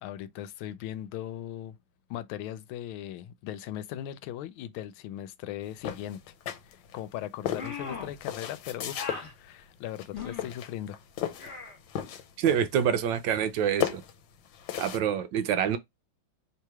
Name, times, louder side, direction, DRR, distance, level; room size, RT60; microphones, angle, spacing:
voice 1, 0.0-1.8 2.1-6.3 6.7-11.0, left 12 dB, 90° left, 1.4 m, -38 dB
sound 1, 5.8-7.0 7.5-9.2 9.9-10.1 10.4-11.6 11.9-12.8 13.1-15.0, left 10 dB, 70° left, 1.3 m, -34 dB
sound 2, 7.6-8.2 8.9-9.3 10.1-10.5 11.4-11.8, left 5 dB, 40° left, 1.5 m, -38 dB
voice 2, 12.4-14.0 14.8-15.8, right 8 dB, 75° right, 1.2 m, -26 dB
3.3 x 2.9 x 4.6 m
omnidirectional pair, 2.2 m